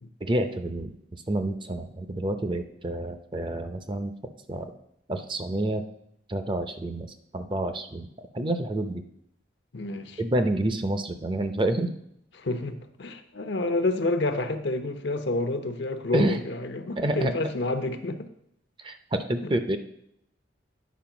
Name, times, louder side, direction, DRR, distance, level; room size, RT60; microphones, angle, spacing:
voice 1, 0.2-4.1 4.5-4.7 5.1-5.8 6.3-8.1 8.3-9.0 10.2-11.9 16.1-16.4 17.0-17.3 18.8-19.8, right 1 dB, 25° right, 8 dB, 0.5 m, -28 dB
voice 2, 9.7-10.2 12.4-18.3 19.4-19.5, left 2 dB, 70° left, 8 dB, 0.8 m, -29 dB
9.3 x 4.5 x 5.9 m, 0.75 s
head